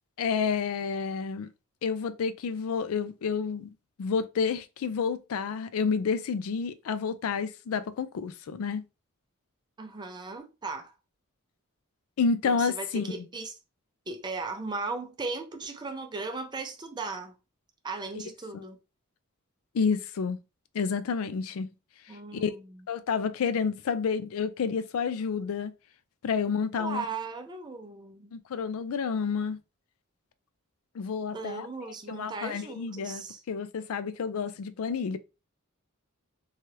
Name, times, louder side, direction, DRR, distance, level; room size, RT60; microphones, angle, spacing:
voice 1, 0.2-1.5 1.8-3.7 4.0-8.8 12.2-13.3 18.5-18.6 19.7-20.4 20.7-21.7 22.4-22.5 22.9-25.7 26.2-27.0 28.3-29.6 31.0-35.2, left 5 dB, 70° left, 0.4 m, -30 dB
voice 2, 9.8-10.9 12.6-13.5 14.1-17.3 17.8-18.8 22.1-22.8 26.7-28.3 31.3-33.4, right 3 dB, 20° right, 0.5 m, -37 dB
2.8 x 2.3 x 3.1 m
head